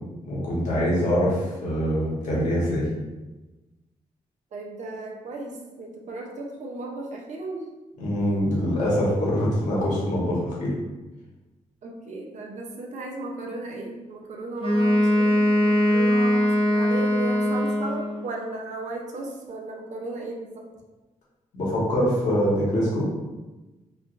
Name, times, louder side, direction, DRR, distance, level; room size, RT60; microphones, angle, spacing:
voice 1, 0.2-2.9 8.0-10.7 21.5-23.1, equal, 70° left, -6 dB, 1.1 m, -24 dB
voice 2, 4.5-7.7 11.8-20.7, right 2 dB, 70° right, 0 dB, 0.5 m, -35 dB
Wind instrument woodwind instrument, 14.6-18.3, left 1 dB, 45° left, 0.7 m, -21 dB
3.3 x 2.2 x 2.4 m, 1.1 s
wide cardioid pair, 125°, 13 cm